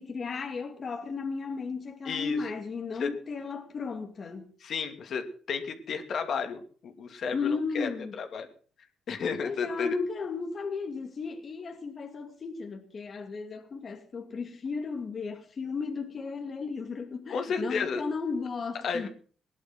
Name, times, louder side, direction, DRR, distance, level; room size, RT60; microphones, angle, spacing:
voice 1, 0.0-4.5 7.3-8.1 9.4-19.1, left 4 dB, 45° left, 2.4 m, -34 dB
voice 2, 2.0-2.4 3.0-3.1 4.6-7.9 8.2-8.5 9.1-9.9 17.3-18.0 18.8-19.1, left 5 dB, 60° left, 2.6 m, -32 dB
17.0 x 11.0 x 6.1 m
cardioid pair, 90°, 0 cm